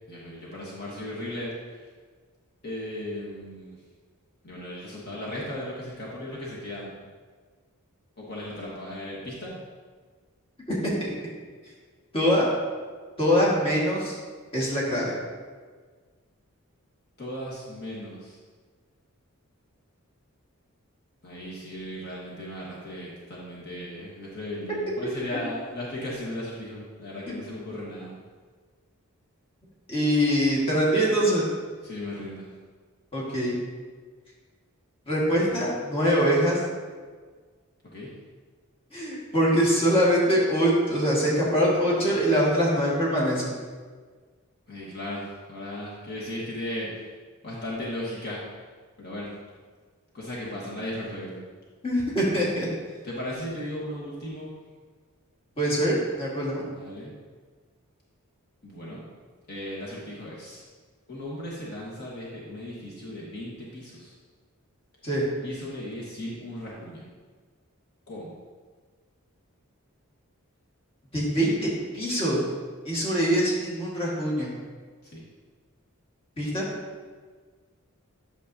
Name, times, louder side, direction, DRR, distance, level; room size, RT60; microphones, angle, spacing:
voice 1, 0.1-1.9 2.6-3.8 4.4-6.9 8.2-9.6 17.2-18.4 21.2-28.2 31.8-32.5 37.9-38.1 44.7-47.1 47.4-48.4 49.0-49.3 50.1-51.4 53.0-54.5 56.7-57.1 58.6-59.0 59.5-60.6 61.1-64.1 65.4-67.0 68.1-68.3 75.0-75.2, left 1 dB, 50° left, -6 dB, 1.4 m, -36 dB
voice 2, 12.1-12.5 13.2-14.2 14.5-15.1 29.9-31.5 33.1-33.5 35.1-36.6 38.9-43.5 51.8-52.7 55.6-56.6 65.0-65.2 71.1-72.4 72.8-74.5 76.4-76.6, equal, 25° left, -6 dB, 1.6 m, -23 dB
8.5 x 6.4 x 2.7 m, 1.5 s
head